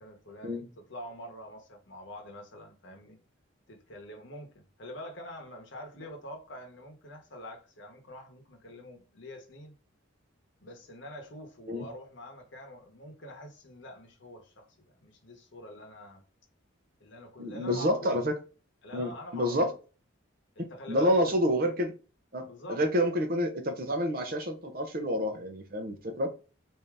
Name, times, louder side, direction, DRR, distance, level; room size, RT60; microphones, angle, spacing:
voice 1, 0.0-3.2 3.7-9.7 10.6-16.2 17.0-18.2 18.8-19.7 20.6-21.4 22.4-22.8, left 1 dB, 60° left, 0.9 m, -46 dB
voice 2, 17.4-18.3 18.9-19.7 20.6-21.9 22.3-26.3, equal, 45° right, 0.6 m, -28 dB
3.6 x 2.7 x 3.3 m
head